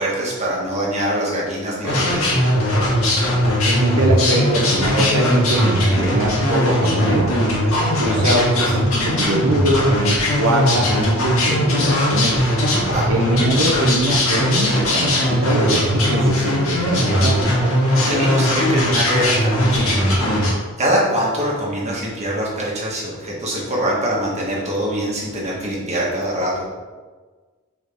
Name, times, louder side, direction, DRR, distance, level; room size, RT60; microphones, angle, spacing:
voice 1, 0.0-2.4 8.1-8.4 12.9-13.1 17.9-20.4 20.8-26.6, equal, 30° right, -5 dB, 1.7 m, -24 dB
sound 1, 1.8-20.5, left 1 dB, 75° left, 1.7 m, -19 dB
voice 2, 3.7-7.4 8.0-12.5 13.1-17.4 21.9-22.0, right 1 dB, 85° right, -2 dB, 0.8 m, -22 dB
6.5 x 4.7 x 3.7 m, 1.4 s
head